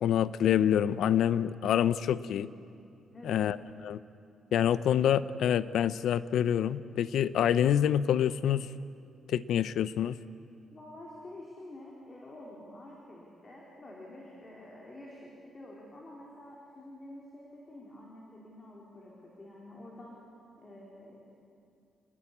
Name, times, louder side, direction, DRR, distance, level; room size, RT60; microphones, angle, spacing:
voice 1, 0.0-2.5 3.2-3.6 3.8-4.0 4.5-8.7 9.3-10.2, left 10 dB, 80° left, 15 dB, 0.7 m, -26 dB
voice 2, 3.1-3.5 10.7-20.2 20.6-21.3, left 1 dB, 30° left, -3 dB, 4.5 m, -48 dB
29.5 x 20.0 x 8.6 m, 2.5 s
cardioid pair, 115°, 0 cm